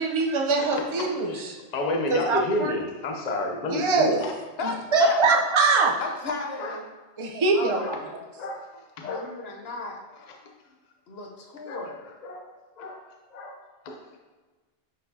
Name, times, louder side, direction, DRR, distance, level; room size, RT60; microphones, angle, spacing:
voice 1, 0.0-1.6 2.1-2.8 3.7-4.2 4.9-5.9 7.2-7.8, right 3 dB, 35° right, 0 dB, 0.7 m, -22 dB
voice 2, 0.6-4.3 6.6-6.7 7.8-8.0 8.3-8.7 9.0-9.3 10.3-10.4 11.6-11.9 12.2-12.5 12.8-13.0 13.3-13.6 13.8-14.0, left 1 dB, 45° left, 2 dB, 0.8 m, -31 dB
voice 3, 4.6-5.2 6.0-6.8 7.5-8.1 9.0-10.0 11.1-12.0, left 3 dB, 75° left, 1 dB, 1.2 m, -34 dB
10.0 x 4.3 x 2.7 m, 1.3 s
omnidirectional pair, 1.0 m